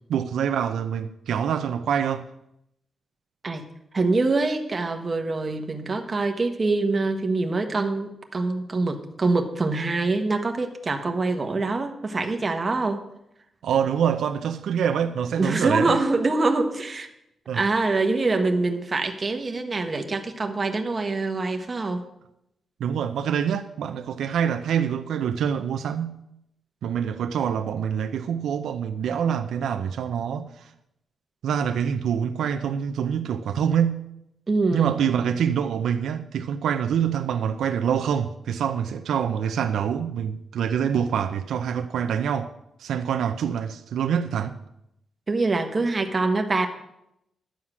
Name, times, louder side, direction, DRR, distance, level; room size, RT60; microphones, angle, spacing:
voice 1, 0.1-2.2 13.6-16.0 17.5-17.6 22.8-26.2 26.8-30.7 31.4-34.0 34.7-42.5 42.8-44.6, right 8 dB, 85° right, 0.6 m, -25 dB
voice 2, 3.9-13.0 15.4-17.1 17.5-22.0 34.5-35.1 45.3-46.7, right 3 dB, 30° right, 1.3 m, -25 dB
11.5 x 7.3 x 6.1 m
wide cardioid pair, 135°, 0 cm